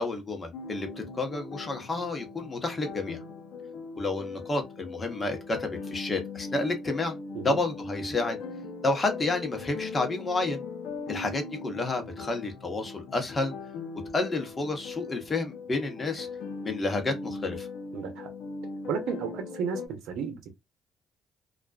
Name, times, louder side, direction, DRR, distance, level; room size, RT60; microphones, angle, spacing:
voice 1, 0.0-3.2 4.0-7.2 7.4-8.4 8.8-10.6 11.1-13.5 14.1-16.3 16.6-17.7, left 2 dB, 35° left, 0.9 m, -30 dB
sound 1, 0.5-19.9, left 4 dB, 75° left, 0.6 m, -40 dB
voice 2, 17.9-18.3 18.9-20.6, right 6 dB, 80° right, 0.6 m, -33 dB
2.4 x 2.2 x 2.3 m
supercardioid pair, 70°, 0 cm